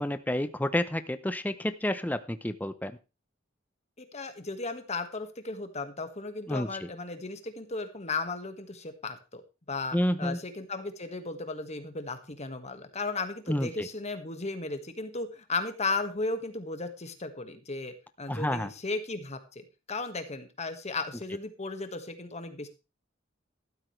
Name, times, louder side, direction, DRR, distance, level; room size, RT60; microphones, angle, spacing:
voice 1, 0.0-2.9 6.5-6.9 9.9-10.4 13.5-13.9 18.3-18.7, left 1 dB, 10° left, 11 dB, 0.7 m, -30 dB
voice 2, 4.0-9.4 9.7-22.7, left 3 dB, 35° left, 8 dB, 1.7 m, -35 dB
13.0 x 12.5 x 3.3 m, 0.29 s
head